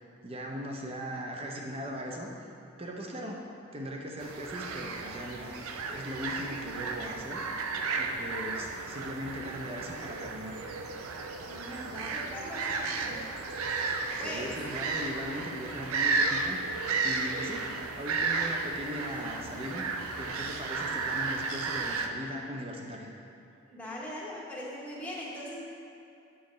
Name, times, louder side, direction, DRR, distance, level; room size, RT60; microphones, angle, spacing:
voice 1, 0.2-2.3 2.8-3.5 3.7-5.5 5.9-7.4 8.0-10.6 14.2-16.8 17.0-19.9 20.2-23.1, equal, 25° right, 0 dB, 0.6 m, -39 dB
sound 1, 4.2-22.1, right 4 dB, 75° right, 0.4 m, -33 dB
voice 2, 11.5-13.2 14.2-14.6 23.7-25.6, left 1 dB, 5° left, -6 dB, 0.9 m, -40 dB
8.3 x 4.7 x 3.1 m, 2.6 s
head